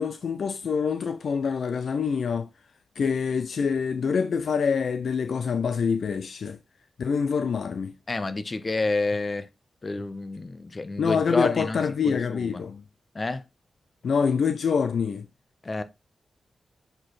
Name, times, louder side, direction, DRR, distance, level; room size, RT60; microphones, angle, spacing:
voice 1, 0.0-2.5 3.0-6.6 7.0-7.9 11.0-12.8 14.0-15.3, left 6 dB, 75° left, 0.4 m, -26 dB
voice 2, 8.1-9.5 9.8-12.6 13.1-13.4 15.6-15.8, left 3 dB, 40° left, 0.9 m, -29 dB
7.4 x 4.4 x 3.2 m
cardioid pair, 45°, 0 cm